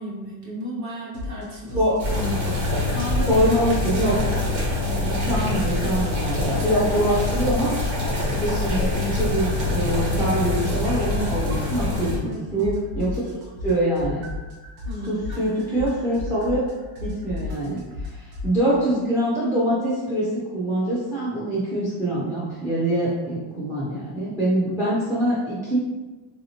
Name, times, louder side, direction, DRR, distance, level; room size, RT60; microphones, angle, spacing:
voice 1, 0.0-1.8 2.1-3.4 4.0-4.2 12.0-12.7 14.8-15.8 24.7-24.8, equal, 35° right, -5 dB, 0.9 m, -34 dB
sound 1, 1.1-1.4 1.7-3.6 3.9-5.8 6.0-8.0 8.2-12.3 12.6-18.5, left 4 dB, 80° right, 1.0 m, -33 dB
sound 2, 2.0-12.2, left 2 dB, 60° right, 1.4 m, -25 dB
voice 2, 3.3-4.1 5.0-7.7 8.3-13.2 13.6-14.2 15.1-16.6 17.0-20.3 20.5-25.8, right 1 dB, 5° right, -7 dB, 0.3 m, -24 dB
3.2 x 2.8 x 2.7 m, 1.2 s
cardioid pair, 160°, 50 cm